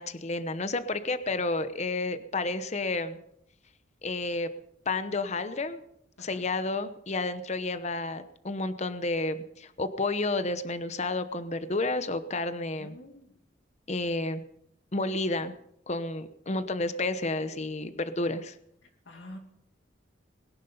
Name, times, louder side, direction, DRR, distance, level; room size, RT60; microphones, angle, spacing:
voice 1, 0.0-3.2 4.0-4.5 4.9-5.8 6.2-13.0 13.9-14.4 14.9-15.5 15.9-18.5, left 2 dB, 35° left, 11 dB, 0.9 m, -31 dB
voice 2, 12.8-13.3 19.1-19.4, left 1 dB, 80° left, 2 dB, 2.5 m, -46 dB
21.0 x 11.0 x 5.6 m, 0.75 s
head